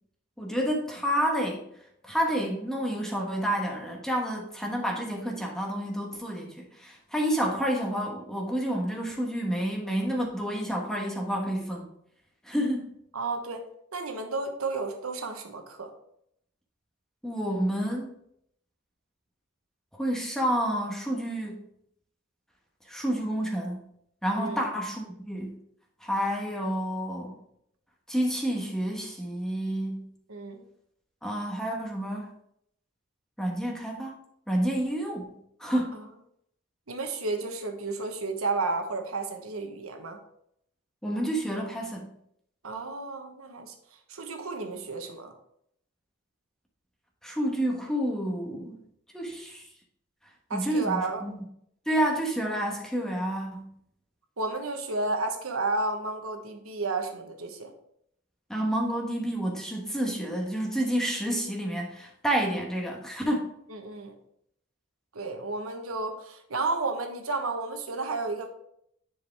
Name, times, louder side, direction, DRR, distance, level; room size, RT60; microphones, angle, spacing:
voice 1, 0.4-1.6 2.0-11.9 12.4-12.9 17.2-18.1 19.9-21.6 22.9-23.8 24.2-25.6 26.0-27.4 28.1-30.1 31.2-32.3 33.4-34.1 34.5-35.3 35.6-36.0 41.0-42.1 47.2-48.8 49.1-49.6 50.5-51.3 51.9-53.7 58.5-63.5, equal, ahead, -1 dB, 1.2 m, -29 dB
voice 2, 13.1-13.7 13.9-15.9 24.4-24.6 30.3-30.6 35.9-36.0 36.9-40.2 42.6-43.7 44.1-45.3 50.5-51.2 54.4-57.7 63.7-64.1 65.1-68.5, right 3 dB, 80° right, 5 dB, 1.1 m, -32 dB
10.5 x 4.8 x 3.5 m, 0.72 s
head